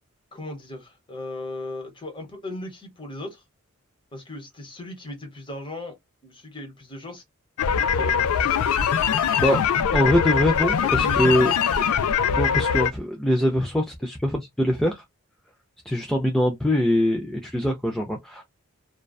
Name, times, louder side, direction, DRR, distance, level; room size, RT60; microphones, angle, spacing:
voice 1, 0.3-3.4 4.1-6.0 6.2-7.2 7.9-8.7 10.8-11.5, left 2 dB, 25° left, 0.9 m, -37 dB
sound 1, 7.6-12.9, left 7 dB, 85° left, 0.4 m, -22 dB
voice 2, 9.9-11.5 12.3-15.0 15.9-18.4, equal, ahead, 0.3 m, -23 dB
2.5 x 2.2 x 2.2 m
head